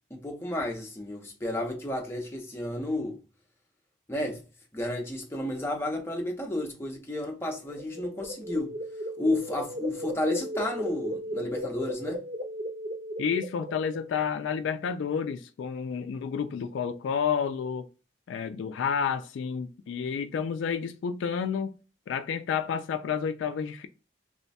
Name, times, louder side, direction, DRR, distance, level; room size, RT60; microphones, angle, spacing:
voice 1, 0.1-3.2 4.1-4.4 4.7-8.7 9.2-12.2, left 1 dB, 10° left, 0.6 m, -32 dB
sound 1, 7.5-14.2, equal, 45° right, 0.6 m, -36 dB
voice 2, 13.2-17.9 18.3-21.8 22.1-23.9, left 6 dB, 70° left, 0.3 m, -30 dB
3.1 x 2.2 x 4.0 m
head